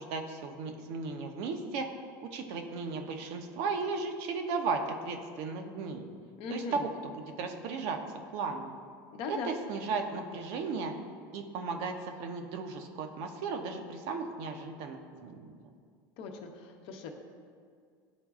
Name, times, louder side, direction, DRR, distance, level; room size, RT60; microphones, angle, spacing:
voice 1, 0.0-1.9 2.2-6.1 6.5-8.0 8.3-8.7 9.3-10.9 11.3-15.5, right 4 dB, 65° right, 4 dB, 0.7 m, -35 dB
voice 2, 6.4-6.9 9.1-9.5 16.2-17.1, left 5 dB, 60° left, 3 dB, 0.8 m, -39 dB
10.5 x 3.9 x 2.4 m, 2.1 s
hypercardioid pair, 95°, 11 cm